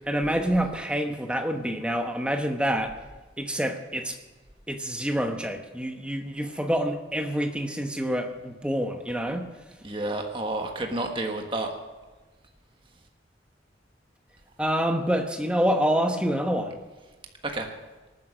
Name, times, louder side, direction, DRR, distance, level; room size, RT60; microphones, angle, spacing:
voice 1, 0.1-3.0 3.4-4.2 4.7-9.5 14.6-16.8, equal, 5° right, 5 dB, 1.0 m, -27 dB
voice 2, 9.8-11.7 17.4-17.7, right 2 dB, 30° right, 3 dB, 1.4 m, -30 dB
19.0 x 9.5 x 6.2 m, 1.2 s
head